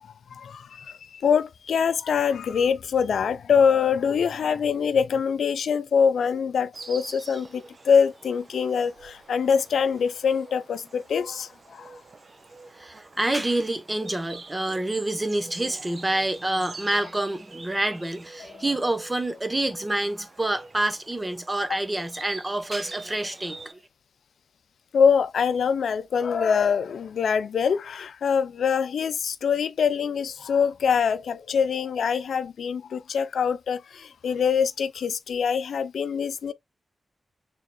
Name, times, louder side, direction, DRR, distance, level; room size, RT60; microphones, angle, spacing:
voice 1, 0.3-11.9 18.4-18.6 24.9-36.5, left 6 dB, 90° left, 0.5 m, -24 dB
Insect, 6.7-23.7, right 3 dB, 45° right, 0.7 m, -46 dB
voice 2, 12.8-23.8, right 1 dB, 20° right, 0.9 m, -27 dB
6.6 x 3.6 x 2.2 m
cardioid pair, 80°, 0 cm